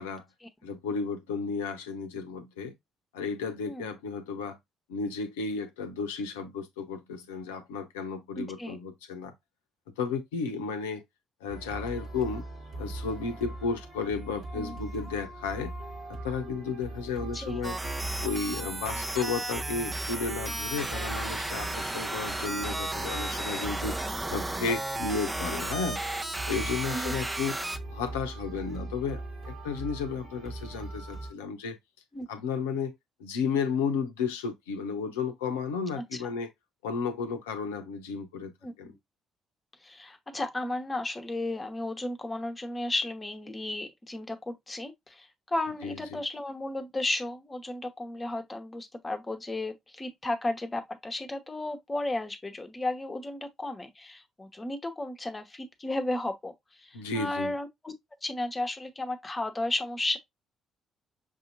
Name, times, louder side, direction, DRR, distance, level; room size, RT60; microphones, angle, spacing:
voice 1, 0.6-2.7 3.1-4.6 4.9-9.3 10.0-11.0 11.4-12.4 12.8-15.7 16.1-17.8 18.2-24.0 24.3-26.0 26.5-27.5 27.9-31.8 32.3-32.9 33.2-36.5 36.8-38.5 38.8-38.9 45.8-46.2 56.9-57.5, left 5 dB, 75° left, 0.7 m, -33 dB
voice 2, 8.4-8.8 14.5-14.8 17.3-17.6 26.9-27.1 32.1-32.3 38.6-39.0 39.8-57.9 58.2-60.2, left 2 dB, 25° left, 1.0 m, -34 dB
sound 1, 11.5-31.3, right 2 dB, 55° right, 1.4 m, -40 dB
sound 2, 17.6-27.8, right 1 dB, 20° right, 0.7 m, -34 dB
6.2 x 2.8 x 2.5 m
figure-of-eight pair, 45°, 0 cm